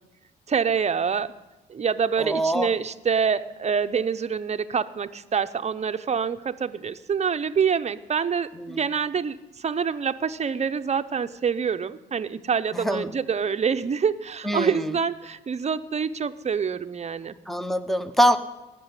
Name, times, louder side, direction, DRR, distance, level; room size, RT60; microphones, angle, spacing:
voice 1, 0.5-1.3 1.7-17.4, right 6 dB, 35° right, 10 dB, 0.8 m, -26 dB
voice 2, 2.2-2.7 8.5-8.8 12.7-13.1 14.4-15.0 17.5-18.4, equal, ahead, 11 dB, 1.0 m, -24 dB
17.0 x 6.9 x 9.8 m, 1.0 s
cardioid pair, 90°, 20 cm